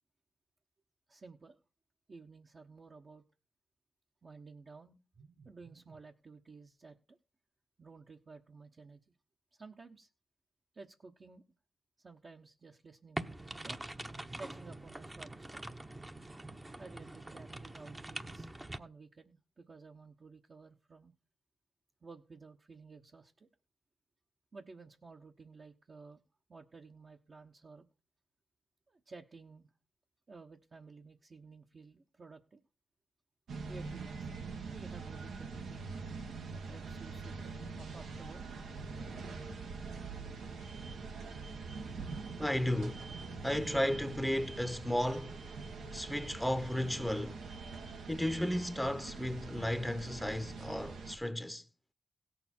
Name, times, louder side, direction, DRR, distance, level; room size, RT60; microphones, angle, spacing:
voice 1, 1.1-1.6 2.1-3.2 4.2-7.2 7.8-9.0 9.5-10.1 10.7-11.4 12.0-13.8 14.3-15.6 16.8-18.5 18.8-21.1 22.0-23.5 24.5-26.2 26.5-27.9 28.9-29.7 30.3-32.6 33.6-35.9 36.5-38.4, right 4 dB, 50° right, 1.2 m, -54 dB
sound 1, 13.2-18.8, right 1 dB, 20° right, 0.9 m, -44 dB
sound 2, 33.5-51.2, right 4 dB, 90° right, 1.4 m, -44 dB
voice 2, 42.4-43.1 43.4-45.4 45.9-47.4 48.1-51.7, left 1 dB, 5° left, 0.9 m, -34 dB
16.5 x 6.9 x 4.4 m
cardioid pair, 50°, 0 cm